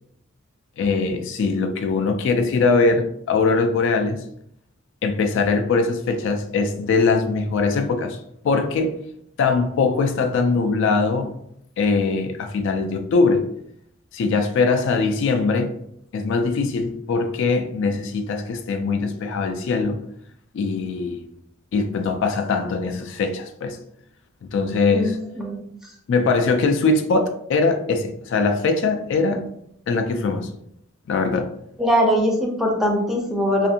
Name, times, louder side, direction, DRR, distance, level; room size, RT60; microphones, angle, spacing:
voice 1, 0.8-4.2 5.0-8.2 8.4-9.0 9.4-11.3 11.8-13.5 14.1-15.7 16.1-20.0 20.5-21.2 21.7-23.8 24.5-25.1 26.1-29.4 29.9-30.5 31.1-31.5, left 4 dB, 60° left, 0.3 m, -21 dB
voice 2, 24.9-26.0 31.8-33.7, equal, ahead, 0.5 m, -22 dB
2.5 x 2.4 x 2.7 m
head